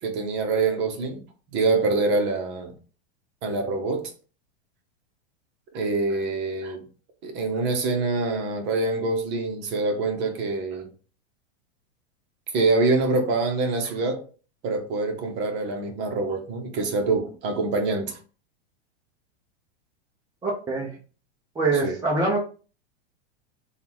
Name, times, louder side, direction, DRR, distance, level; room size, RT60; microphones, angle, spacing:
voice 1, 0.0-1.2 1.5-2.7 3.4-4.1 5.7-6.8 7.2-10.9 12.5-14.2 14.6-18.2 21.8-22.0, right 3 dB, 35° right, 0.9 m, -25 dB
voice 2, 20.4-21.0 21.6-22.4, right 3 dB, 10° right, 0.5 m, -24 dB
3.6 x 2.4 x 4.4 m
supercardioid pair, 150°, 33 cm